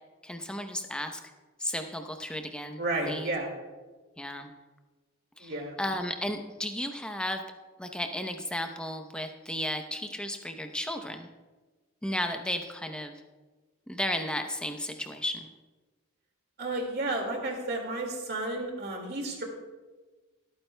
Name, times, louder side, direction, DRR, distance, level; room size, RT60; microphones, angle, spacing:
voice 1, 0.2-1.2 1.6-3.3 4.2-4.5 5.4-5.5 5.8-7.4 7.8-11.3 12.0-13.1 13.9-15.5, left 1 dB, 5° left, 5 dB, 0.6 m, -34 dB
voice 2, 2.8-3.5 5.4-5.8 16.6-19.4, right 2 dB, 50° right, 2 dB, 2.1 m, -32 dB
24.0 x 9.0 x 2.2 m, 1.3 s
head